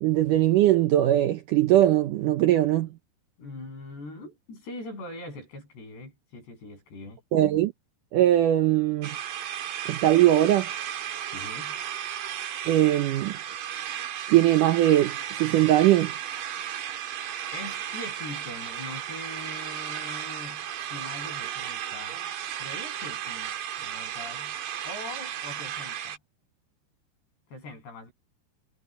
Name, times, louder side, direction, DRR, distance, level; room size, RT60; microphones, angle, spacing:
voice 1, 0.0-2.9 7.3-7.7 8.1-9.2 9.9-10.7 12.7-13.3 14.3-16.1, right 13 dB, 80° right, 1.9 m, -21 dB
voice 2, 3.4-7.2 11.3-11.8 17.5-22.2 22.6-24.6 24.8-26.2 27.5-28.1, left 2 dB, 85° left, 10.5 m, -42 dB
sound 1, 9.0-26.2, right 10 dB, 65° right, 2.7 m, -35 dB
omnidirectional pair, 4.7 m